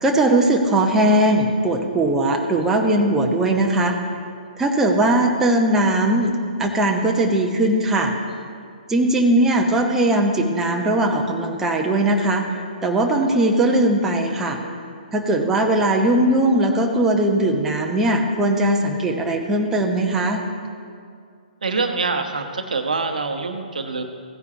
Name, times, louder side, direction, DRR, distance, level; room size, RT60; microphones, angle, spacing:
voice 1, 0.0-4.0 4.6-6.3 6.6-8.1 8.9-12.5 12.8-14.6 15.1-20.4, right 1 dB, 10° right, 1 dB, 0.9 m, -19 dB
voice 2, 21.6-24.0, right 4 dB, 65° right, 6 dB, 0.9 m, -25 dB
16.0 x 9.4 x 2.8 m, 2.2 s
figure-of-eight pair, 125°, 5 cm